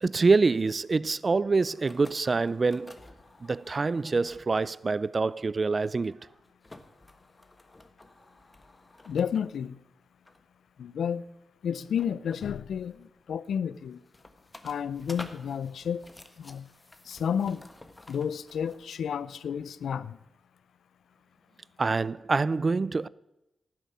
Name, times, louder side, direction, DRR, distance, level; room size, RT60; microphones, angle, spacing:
voice 1, 0.0-3.0 3.4-6.2 21.8-23.1, right 4 dB, 45° right, 0.4 m, -26 dB
sound 1, 1.6-4.8 5.2-5.4 5.8-9.7 10.3-10.5 11.8-13.0 13.5-18.9, left 2 dB, 25° left, 1.4 m, -51 dB
voice 2, 9.1-9.8 10.8-11.2 11.6-14.0 14.6-16.1 16.4-16.7 17.1-17.7 18.1-20.2, left 8 dB, 80° left, 0.5 m, -31 dB
12.5 x 7.5 x 9.4 m
cardioid pair, 55°, 0 cm